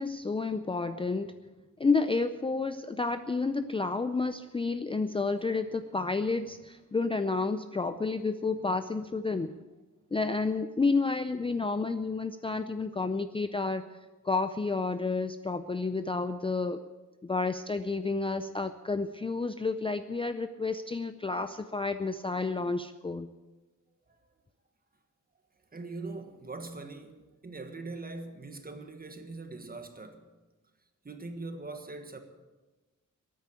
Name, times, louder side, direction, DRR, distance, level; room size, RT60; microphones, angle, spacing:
voice 1, 0.0-1.3 1.8-9.5 10.1-13.8 14.2-16.8 17.2-23.3, left 3 dB, 20° left, 0.4 m, -30 dB
voice 2, 25.7-30.2 31.0-32.2, right 3 dB, 30° right, 1.5 m, -42 dB
13.0 x 9.3 x 8.8 m
wide cardioid pair, 145°, 31 cm